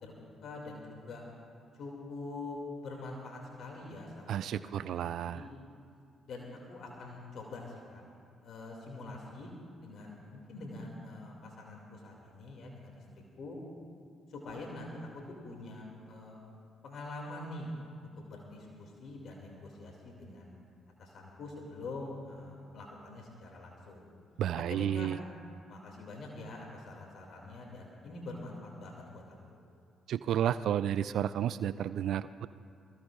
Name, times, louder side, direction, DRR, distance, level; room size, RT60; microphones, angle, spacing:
voice 1, 0.0-1.2 1.7-4.5 5.0-5.5 6.3-8.0 8.4-9.5 9.8-13.6 14.3-16.4 16.8-17.7 18.0-20.5 21.0-24.1 24.7-25.1 25.7-29.6, left 2 dB, 60° left, -1 dB, 2.4 m, -45 dB
voice 2, 4.3-5.4 24.4-25.2 30.1-32.5, right 10 dB, 65° right, 15 dB, 0.3 m, -31 dB
24.0 x 15.5 x 2.5 m, 2.4 s
hypercardioid pair, 50°, 0 cm